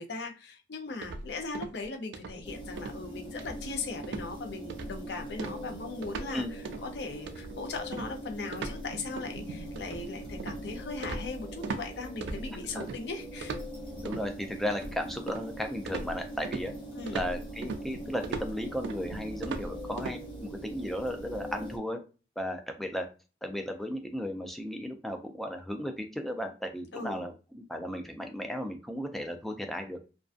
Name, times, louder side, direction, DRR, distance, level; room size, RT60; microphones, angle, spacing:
voice 1, 0.0-13.6 17.0-17.2 26.9-27.3, left 3 dB, 70° left, 0.5 m, -39 dB
sound 1, 1.0-1.8 2.1-2.4 2.8-3.0 3.4-3.8 4.0-4.3 4.7-5.0 5.4-6.3 6.6-6.9 7.3-11.9 12.2-13.0 13.4-14.3 14.7-15.5 15.9-20.2, right 3 dB, 80° right, 0.3 m, -39 dB
sound 2, 2.4-21.8, right 1 dB, 30° left, 0.8 m, -42 dB
voice 2, 13.9-16.7 17.1-22.0 22.4-23.1 23.4-30.0, equal, ahead, 0.3 m, -35 dB
2.4 x 2.2 x 2.4 m
head